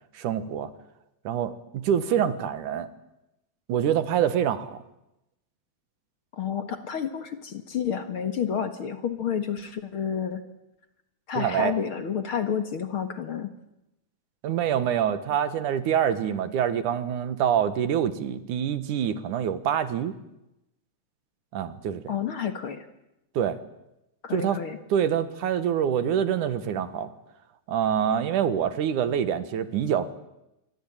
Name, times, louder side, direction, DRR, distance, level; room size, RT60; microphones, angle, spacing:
voice 1, 0.1-0.7 1.2-2.9 3.7-4.8 11.4-11.7 14.4-20.1 21.5-22.1 23.3-23.6 24.3-24.6 24.9-27.1 27.7-30.1, right 9 dB, 80° right, 12 dB, 3.0 m, -26 dB
voice 2, 6.3-10.4 11.3-13.5 22.1-22.9 24.2-24.8, left 8 dB, 50° left, 9 dB, 2.2 m, -30 dB
26.0 x 24.5 x 8.9 m, 0.89 s
omnidirectional pair, 3.5 m